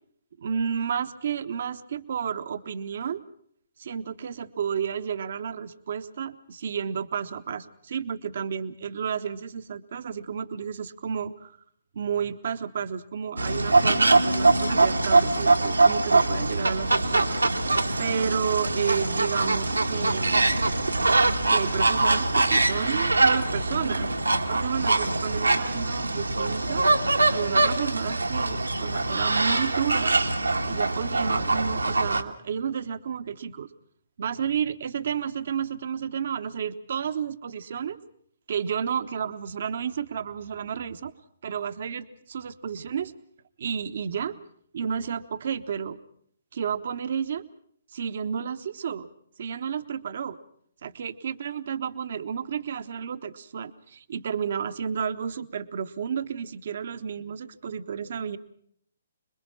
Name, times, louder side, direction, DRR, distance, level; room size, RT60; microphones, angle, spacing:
voice 1, 0.4-3.2 3.8-11.6 11.9-17.3 18.0-20.5 21.5-24.1 24.5-26.8 27.3-30.2 30.6-33.7 34.2-38.0 38.5-41.1 41.4-43.1 43.6-44.4 44.7-46.0 46.5-47.4 47.9-49.1 49.4-50.4 50.8-58.4, right 7 dB, 50° right, 10 dB, 1.0 m, -31 dB
sound 1, 13.4-32.2, right 2 dB, 80° right, 1.6 m, -23 dB
26.5 x 22.0 x 5.7 m, 0.65 s
figure-of-eight pair, 130°, 0 cm